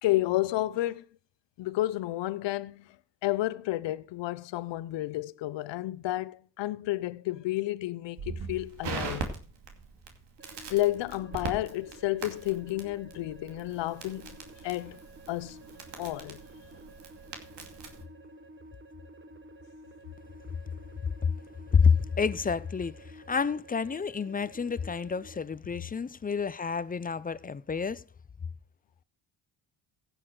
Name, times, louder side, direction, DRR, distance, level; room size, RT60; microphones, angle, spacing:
voice 1, 0.0-1.0 1.6-3.0 3.2-9.3 10.7-14.4 14.6-15.0 15.3-15.6 16.0-16.4, left 16 dB, 70° left, 0.8 m, -31 dB
Crackle, 8.2-18.0, right 5 dB, 65° right, 2.6 m, -41 dB
sound 1, 10.4-25.4, right 2 dB, 25° right, 1.2 m, -52 dB
voice 2, 21.7-28.0, left 6 dB, 20° left, 0.5 m, -28 dB
15.5 x 6.5 x 4.8 m
supercardioid pair, 70°, 45 cm